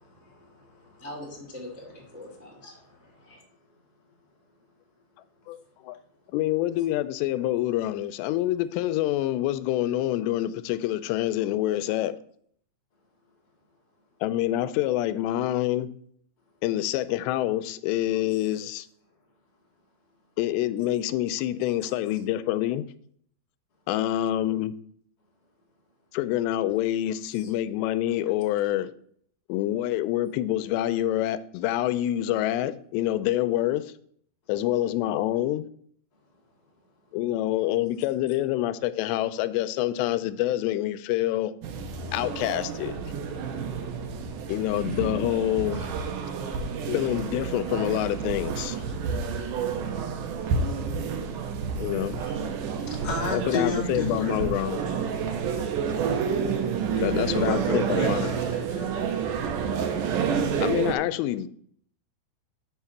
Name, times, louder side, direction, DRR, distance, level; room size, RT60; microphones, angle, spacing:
voice 1, 0.0-1.1 2.4-2.5 21.8-21.9 27.3-27.5 52.2-52.3 52.7-54.4 57.0-59.0, left 2 dB, 25° left, 1.0 m, -33 dB
voice 2, 1.0-3.4, left 1 dB, 15° right, 0.4 m, -43 dB
voice 3, 5.5-6.0 6.3-12.2 14.2-15.9 16.6-18.9 20.4-22.9 23.9-24.7 26.1-28.9 29.5-33.9 34.5-35.7 37.1-41.5 42.1-42.9 44.5-45.9 46.9-48.8 51.8-52.2 53.3-54.8 57.0-58.3 60.6-61.5, left 14 dB, 90° left, 2.7 m, -26 dB
sound 1, 41.6-60.9, right 6 dB, 80° right, 1.8 m, -29 dB
6.2 x 5.7 x 7.1 m
omnidirectional pair, 4.9 m